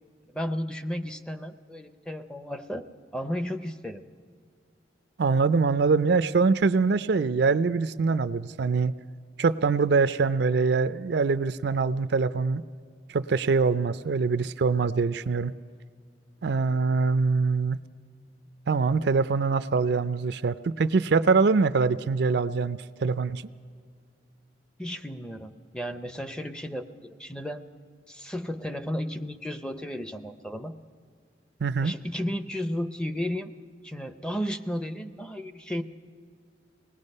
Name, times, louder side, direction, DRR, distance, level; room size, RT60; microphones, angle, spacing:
voice 1, 0.3-2.8 3.1-4.0 24.8-27.7 28.1-30.7 31.8-33.5 33.8-35.8, equal, 5° left, 9 dB, 0.6 m, -33 dB
voice 2, 5.2-8.9 9.4-12.6 13.1-15.5 16.4-17.8 18.7-23.4 31.6-31.9, right 4 dB, 60° right, 13 dB, 0.4 m, -24 dB
25.5 x 19.5 x 5.4 m, 2.1 s
head